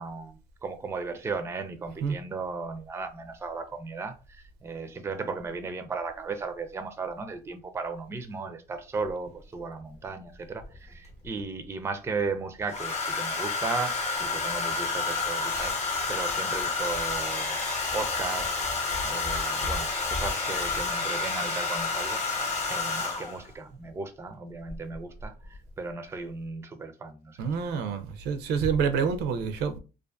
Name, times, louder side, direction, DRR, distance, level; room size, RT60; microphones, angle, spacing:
voice 1, 0.0-17.6 17.9-27.6 27.8-27.9, right 4 dB, 15° right, 0.4 m, -36 dB
Domestic sounds home sounds, 9.1-9.2 10.6-11.3 12.7-23.5 24.7-24.9 25.2-25.6, left 3 dB, 40° left, 0.7 m, -29 dB
voice 2, 27.4-29.8, right 6 dB, 85° right, 0.5 m, -27 dB
2.4 x 2.4 x 2.3 m
cardioid pair, 110°, 17 cm